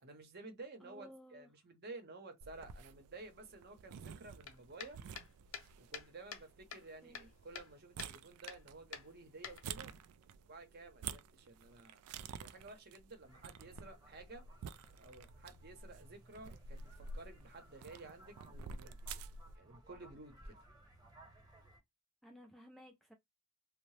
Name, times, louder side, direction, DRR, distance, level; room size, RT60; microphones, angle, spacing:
voice 1, 0.0-5.0 5.8-9.9 10.5-14.4 14.9-19.2 19.6-20.6, right 3 dB, 45° right, 0.8 m, -53 dB
voice 2, 0.8-1.5 7.0-7.3 22.2-23.1, equal, ahead, 0.3 m, -57 dB
sound 1, 2.4-19.6, right 5 dB, 90° right, 0.3 m, -51 dB
sound 2, 4.4-6.5 6.7-7.7 8.0-8.1 8.5-8.6 8.9-10.0, left 7 dB, 65° left, 0.6 m, -48 dB
sound 3, 13.2-21.8, right 1 dB, 15° right, 0.9 m, -61 dB
2.7 x 2.0 x 3.1 m
head